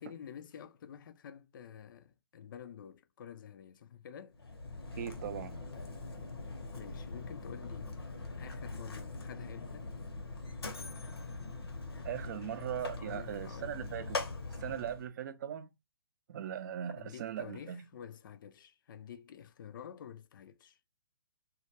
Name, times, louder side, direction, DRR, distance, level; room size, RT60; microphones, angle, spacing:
voice 1, 0.0-4.4 6.8-8.0 8.4-9.9 12.9-13.8 16.9-20.8, left 8 dB, 55° left, 0.4 m, -49 dB
Mechanisms, 4.3-15.1, left 3 dB, 80° left, 0.8 m, -42 dB
voice 2, 5.0-5.6 12.0-14.2 14.6-15.7 16.3-17.8, right 10 dB, 50° right, 0.4 m, -39 dB
2.2 x 2.1 x 2.7 m
figure-of-eight pair, 130°, 13 cm